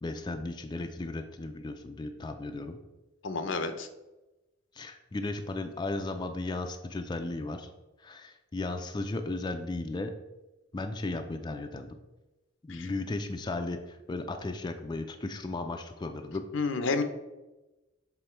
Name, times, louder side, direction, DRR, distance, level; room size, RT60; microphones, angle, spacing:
voice 1, 0.0-2.8 4.7-7.7 8.0-10.1 10.7-12.0 12.6-16.5, left 2 dB, 25° left, 6 dB, 0.4 m, -35 dB
voice 2, 3.2-3.9 12.7-12.9 16.5-17.0, left 4 dB, 75° left, 9 dB, 0.6 m, -30 dB
7.1 x 3.7 x 4.4 m, 1.0 s
head